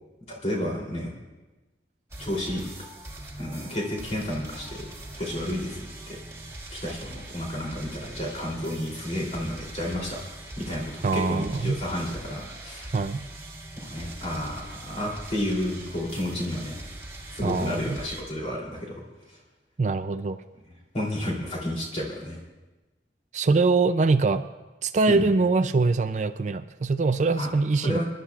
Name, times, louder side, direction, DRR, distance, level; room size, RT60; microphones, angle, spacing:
voice 1, 0.3-1.1 2.2-2.6 3.4-4.9 5.1-6.2 6.7-10.2 10.6-12.9 13.8-16.8 17.3-19.0 19.3-19.4 20.9-22.4 25.1-25.2 27.4-27.5 27.8-28.0, left 1 dB, 35° left, -3 dB, 3.1 m, -31 dB
sound 1, 2.1-18.2, right 1 dB, 15° right, 1.9 m, -42 dB
voice 2, 11.0-11.8 12.9-13.2 17.4-18.0 19.8-20.4 23.3-24.4 24.8-28.0, right 3 dB, 40° right, 10 dB, 0.4 m, -23 dB
26.0 x 11.5 x 2.4 m, 1.1 s
head